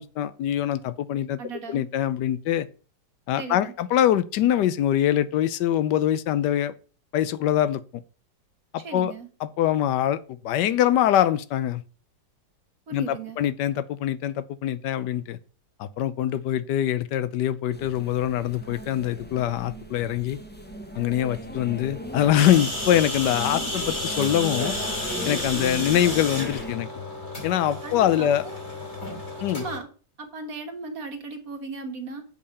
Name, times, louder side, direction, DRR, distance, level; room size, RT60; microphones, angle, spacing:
voice 1, 0.0-1.4 1.7-2.7 3.3-6.7 7.1-8.0 8.7-9.1 9.4-11.8 12.9-15.4 15.8-20.4 21.0-24.7 25.2-26.9 27.4-28.4 29.4-29.6, left 11 dB, 70° left, 1.2 m, -24 dB
voice 2, 1.4-1.8 3.4-3.7 8.8-9.3 12.9-13.4 25.5-26.0 27.8-28.6 29.5-29.9 30.2-32.2, right 4 dB, 50° right, 1.8 m, -37 dB
sound 1, 17.7-26.7, equal, 10° left, 0.5 m, -37 dB
sound 2, 22.4-29.8, left 2 dB, 35° left, 3.0 m, -32 dB
6.7 x 5.3 x 6.9 m
omnidirectional pair, 2.0 m